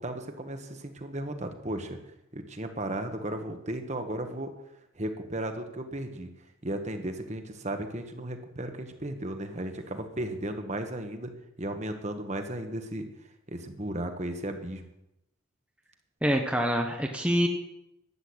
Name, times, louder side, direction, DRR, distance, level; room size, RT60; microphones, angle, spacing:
voice 1, 0.0-2.0 2.3-4.5 4.9-6.3 6.6-11.3 11.6-13.1 13.5-14.9, right 1 dB, 35° right, 6 dB, 1.4 m, -35 dB
voice 2, 16.2-17.5, equal, 5° right, 2 dB, 1.0 m, -25 dB
12.5 x 8.0 x 8.7 m, 0.85 s
head